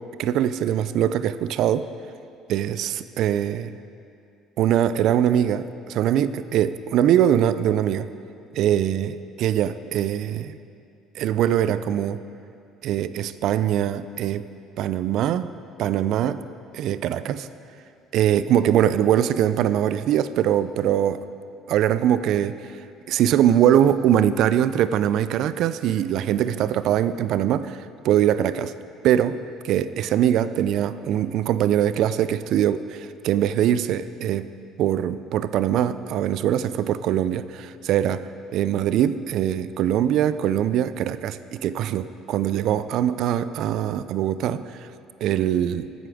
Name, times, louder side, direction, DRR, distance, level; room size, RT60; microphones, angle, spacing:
voice 1, 0.2-1.9 2.5-3.7 4.6-8.1 8.5-10.6 11.2-12.2 12.8-14.4 14.8-15.5 15.8-16.4 16.7-17.5 18.1-21.2 21.7-22.6 23.1-27.8 28.0-28.7 29.0-29.4 29.6-34.5 34.8-38.3 38.5-44.6 45.2-45.9, right 10 dB, 65° right, 14 dB, 0.4 m, -22 dB
15.0 x 7.9 x 4.9 m, 2.5 s
hypercardioid pair, 65°, 0 cm